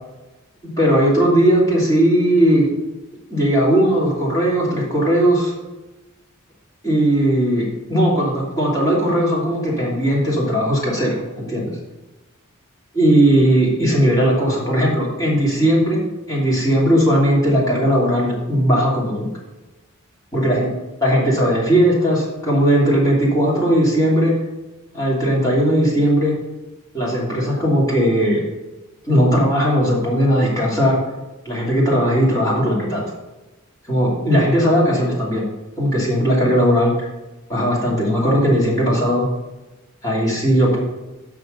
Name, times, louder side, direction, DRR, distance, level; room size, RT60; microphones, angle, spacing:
voice 1, 0.8-2.7 3.3-5.5 6.8-11.7 12.9-16.0 16.3-19.3 20.3-20.7 21.0-24.3 24.9-26.3 26.9-28.4 29.1-31.0 31.4-33.0 33.9-35.4 35.8-37.1 37.5-39.3 40.0-40.8, equal, 15° left, -6 dB, 3.0 m, -17 dB
6.7 x 6.2 x 6.8 m, 1.1 s
head